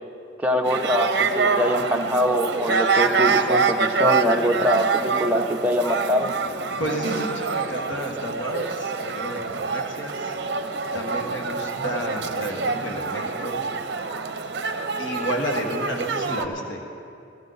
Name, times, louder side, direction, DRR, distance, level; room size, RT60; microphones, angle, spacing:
voice 1, 0.4-6.3, equal, 10° right, 1 dB, 0.6 m, -23 dB
sound 1, 0.6-16.4, right 4 dB, 55° right, 0.6 m, -26 dB
voice 2, 6.8-10.4 10.9-13.6 15.0-16.8, equal, 70° left, 1 dB, 1.5 m, -31 dB
15.0 x 15.0 x 3.9 m, 2.6 s
head